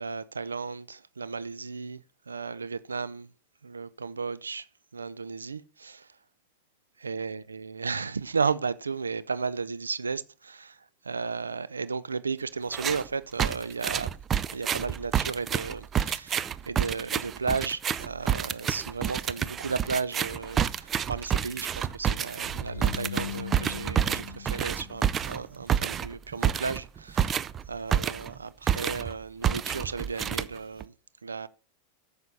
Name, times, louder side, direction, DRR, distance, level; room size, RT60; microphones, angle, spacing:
voice 1, 0.0-3.3 3.6-4.7 4.9-6.1 7.0-14.1 14.5-27.4 27.7-30.9 31.2-31.5, right 5 dB, 90° right, 0.5 m, -34 dB
sound 1, 12.7-13.1 13.4-28.4 28.7-29.1 29.4-30.8, right 9 dB, 30° right, 0.5 m, -29 dB
sound 2, 22.4-25.6, left 9 dB, 80° left, 0.6 m, -40 dB
9.5 x 6.7 x 4.2 m
hypercardioid pair, 95°, 0 cm